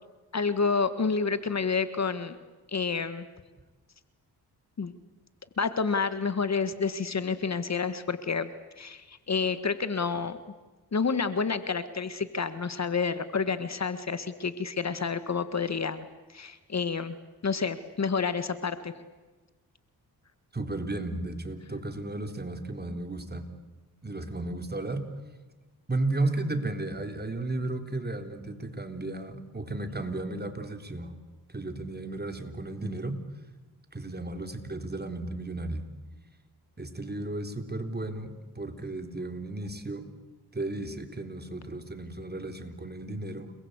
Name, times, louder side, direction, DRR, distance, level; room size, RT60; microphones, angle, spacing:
voice 1, 0.3-2.4 2.7-3.3 4.8-4.9 5.6-8.5 8.8-10.4 10.9-16.0 16.3-17.2 17.4-18.9, left 5 dB, 45° left, 12 dB, 1.7 m, -29 dB
voice 2, 20.5-23.5 24.0-25.1 25.9-31.1 31.5-33.2 33.9-35.9 36.8-40.1 40.5-43.5, right 2 dB, 25° right, 6 dB, 3.9 m, -34 dB
30.0 x 21.5 x 8.2 m, 1.2 s
cardioid pair, 65°, 39 cm